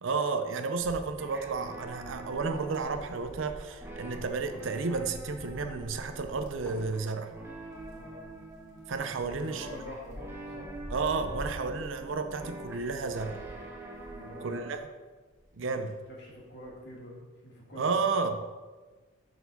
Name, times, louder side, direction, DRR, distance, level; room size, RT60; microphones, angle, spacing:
voice 1, 0.0-7.3 8.9-9.7 10.9-13.4 14.4-14.8 15.6-16.0 17.8-18.4, right 4 dB, 65° right, 7 dB, 0.5 m, -32 dB
Wind, 0.8-14.9 15.3-16.8, equal, 35° right, 1.6 m, -48 dB
sound 1, 1.2-14.8, right 2 dB, 10° right, 0.8 m, -46 dB
sound 2, 1.7-7.0, equal, 10° left, 1.1 m, -51 dB
voice 2, 7.9-8.2 9.2-10.7 14.1-14.8 15.6-18.0, left 1 dB, 50° left, -3 dB, 1.9 m, -46 dB
6.5 x 4.5 x 5.2 m, 1.3 s
head